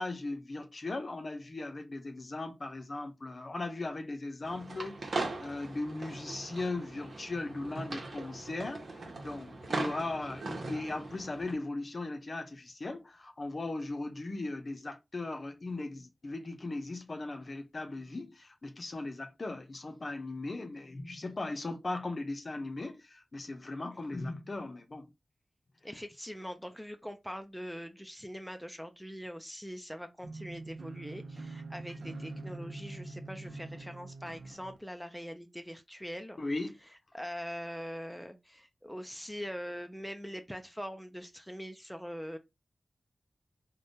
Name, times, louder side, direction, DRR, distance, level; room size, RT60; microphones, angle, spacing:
voice 1, 0.0-25.1 36.4-36.8, left 2 dB, 50° left, 0.6 m, -38 dB
sound 1, 4.4-11.5, right 2 dB, 65° right, 0.9 m, -40 dB
voice 2, 25.8-36.4 37.1-42.4, equal, ahead, 0.4 m, -42 dB
sound 2, 30.2-34.8, right 2 dB, 85° right, 0.5 m, -44 dB
3.4 x 2.2 x 2.6 m
wide cardioid pair, 80°, 0 cm